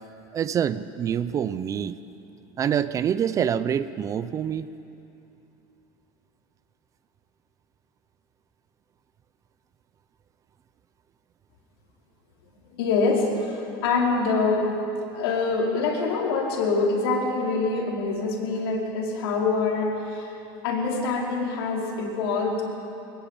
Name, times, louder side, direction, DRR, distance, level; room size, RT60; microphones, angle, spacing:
voice 1, 0.3-2.0 2.6-4.7, right 8 dB, 25° right, 15 dB, 0.6 m, -26 dB
voice 2, 12.8-14.7 15.1-20.4 20.6-22.6, left 3 dB, 85° left, -1 dB, 4.5 m, -25 dB
22.0 x 21.0 x 7.3 m, 2.8 s
supercardioid pair, 145°, 12 cm